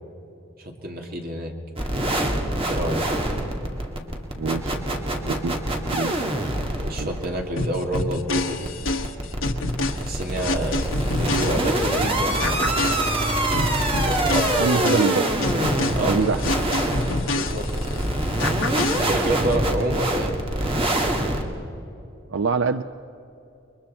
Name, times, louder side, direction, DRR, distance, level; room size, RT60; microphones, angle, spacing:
voice 1, 0.6-1.5 2.6-3.0 6.8-8.7 9.9-12.4 14.0-14.8 15.6-16.2 17.3-17.7 18.9-20.4, right 1 dB, 50° right, 2 dB, 2.4 m, -28 dB
sound 1, 1.8-21.4, right 1 dB, 30° right, 2.0 m, -25 dB
voice 2, 4.4-4.8 5.2-5.6 5.9-6.5 7.0-7.1 14.6-15.4 16.0-16.4 22.3-22.8, right 5 dB, 75° right, 10 dB, 0.5 m, -25 dB
sound 2, 7.6-12.0 12.4-18.0 18.4-19.6, left 3 dB, 85° left, 1.3 m, -28 dB
29.5 x 22.5 x 4.3 m, 2.8 s
head